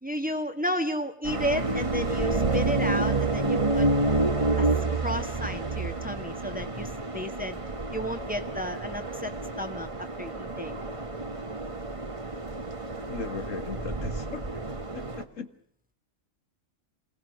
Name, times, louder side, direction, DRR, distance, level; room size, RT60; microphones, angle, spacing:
voice 1, 0.0-3.9 4.6-4.7 5.0-7.6 7.9-9.3 9.6-10.8, equal, 5° right, 6 dB, 1.6 m, -32 dB
sound 1, 1.2-15.2, right 2 dB, 25° right, 1.5 m, -29 dB
voice 2, 13.1-14.4 14.9-15.5, left 5 dB, 80° left, 8 dB, 2.0 m, -37 dB
27.0 x 18.0 x 6.5 m, 0.67 s
omnidirectional pair, 1.3 m